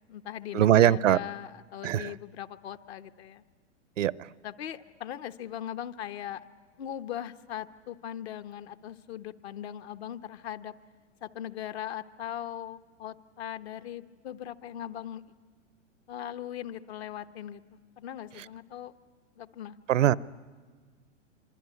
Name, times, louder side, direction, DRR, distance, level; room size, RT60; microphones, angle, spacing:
voice 1, 0.0-3.4 4.4-6.4 6.8-10.7 11.2-15.2 16.1-17.6 18.0-18.9 19.4-19.8, left 10 dB, 60° left, 9 dB, 1.2 m, -39 dB
voice 2, 0.5-1.2 1.8-2.1 4.0-4.3 19.9-20.2, right 11 dB, 80° right, 21 dB, 0.8 m, -22 dB
25.5 x 24.5 x 9.6 m, 1.5 s
hypercardioid pair, 125°, 37 cm